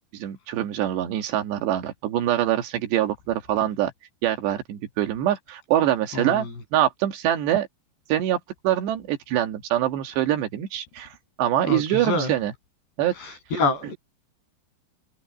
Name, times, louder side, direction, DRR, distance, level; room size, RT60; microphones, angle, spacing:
voice 1, 0.0-3.9 4.2-7.7 8.1-8.4 8.6-11.1 11.4-12.5 13.0-13.1, right 12 dB, 80° right, 4.0 m, -24 dB
voice 2, 6.1-6.5 11.7-12.3 13.2-14.0, left 3 dB, 75° left, 10.0 m, -26 dB
omnidirectional pair, 4.9 m